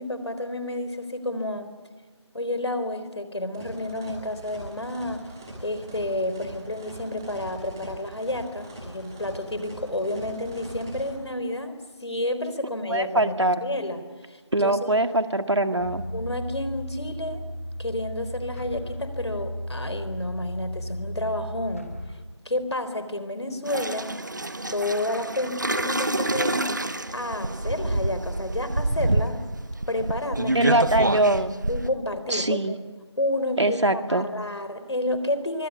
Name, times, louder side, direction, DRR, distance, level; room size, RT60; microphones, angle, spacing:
voice 1, 0.0-1.7 2.3-5.3 5.6-14.0 14.3-14.9 16.1-17.4 17.8-21.9 22.5-24.1 24.7-26.8 27.1-29.4 29.9-30.8 31.7-32.7 33.2-35.7, left 1 dB, 70° left, 10 dB, 3.9 m, -30 dB
sound 1, 3.5-11.0, right 1 dB, 5° right, 3.0 m, -42 dB
voice 2, 12.9-13.6 14.5-16.0 30.5-31.5 32.3-32.8 33.6-34.3, right 1 dB, 70° right, 7 dB, 2.1 m, -22 dB
sound 2, 15.8-22.3, equal, 30° left, 1.2 m, -35 dB
sound 3, 23.7-31.9, right 1 dB, 40° right, 1.2 m, -27 dB
24.0 x 23.5 x 8.4 m, 1.3 s
figure-of-eight pair, 175°, 15 cm